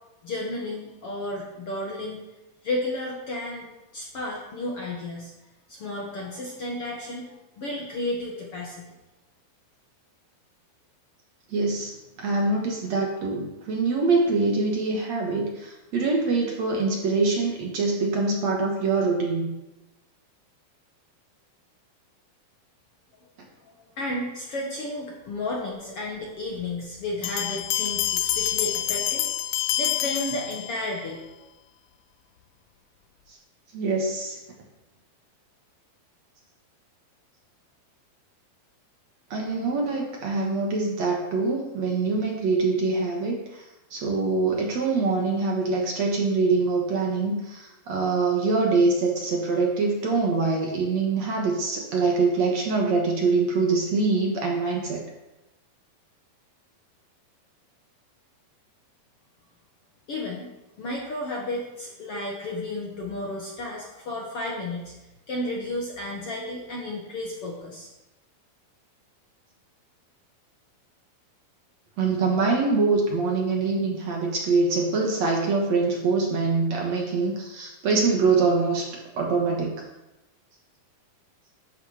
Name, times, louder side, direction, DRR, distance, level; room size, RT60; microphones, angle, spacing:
voice 1, 0.2-2.2 2.6-5.3 5.7-8.9 23.6-29.3 29.7-31.5 60.1-60.5 60.8-64.9 65.3-67.9, left 1 dB, 50° left, -2 dB, 1.9 m, -32 dB
voice 2, 11.5-19.5 33.3-33.4 33.7-34.4 39.3-43.7 43.9-55.0 72.0-79.9, right 3 dB, 55° right, 0 dB, 2.4 m, -24 dB
Bell, 27.2-31.0, left 13 dB, 85° left, 1.7 m, -27 dB
12.5 x 9.7 x 5.0 m, 0.99 s
omnidirectional pair, 4.3 m